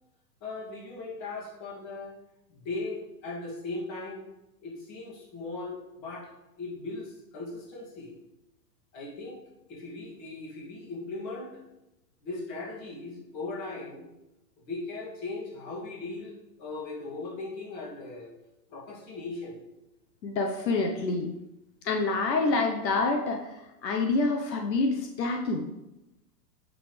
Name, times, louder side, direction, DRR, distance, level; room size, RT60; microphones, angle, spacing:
voice 1, 0.4-2.2 2.5-4.3 4.6-6.3 6.6-8.1 8.9-9.4 9.7-11.6 12.2-14.0 14.6-18.3 18.7-19.6, left 3 dB, 35° left, -3 dB, 2.5 m, -38 dB
voice 2, 20.2-21.3 21.8-25.7, left 3 dB, 80° left, 2 dB, 1.2 m, -27 dB
8.6 x 6.9 x 3.4 m, 0.94 s
hypercardioid pair, 145°, 49 cm